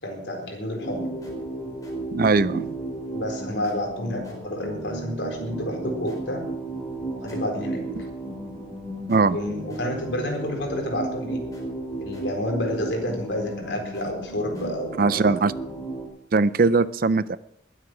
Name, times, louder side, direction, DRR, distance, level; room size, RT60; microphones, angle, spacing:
voice 1, 0.0-1.1 3.1-6.5 7.1-7.8 9.3-11.4 12.0-15.4, left 1 dB, 65° left, 2 dB, 4.2 m, -29 dB
sound 1, 0.8-16.0, right 2 dB, 20° left, 4.8 m, -34 dB
voice 2, 2.1-2.7 9.1-9.4 15.0-15.5 16.3-17.4, right 4 dB, 45° right, 17 dB, 0.5 m, -20 dB
21.5 x 8.2 x 6.1 m, 0.78 s
head